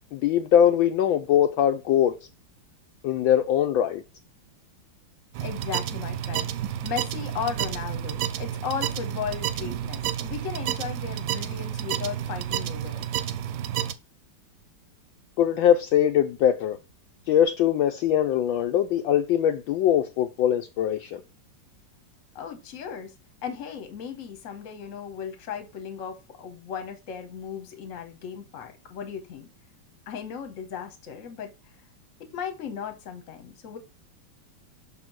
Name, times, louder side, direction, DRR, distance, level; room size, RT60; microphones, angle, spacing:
voice 1, 0.1-2.1 3.0-4.0 15.4-16.8 17.3-21.2, left 10 dB, 75° left, 1.2 m, -22 dB
sound 1, 5.3-13.9, right 10 dB, 75° right, 1.1 m, -30 dB
voice 2, 5.4-13.0 22.3-23.1 23.4-29.5 30.1-31.5 32.2-33.8, left 7 dB, 45° left, 1.2 m, -36 dB
6.0 x 3.6 x 6.1 m
omnidirectional pair, 2.4 m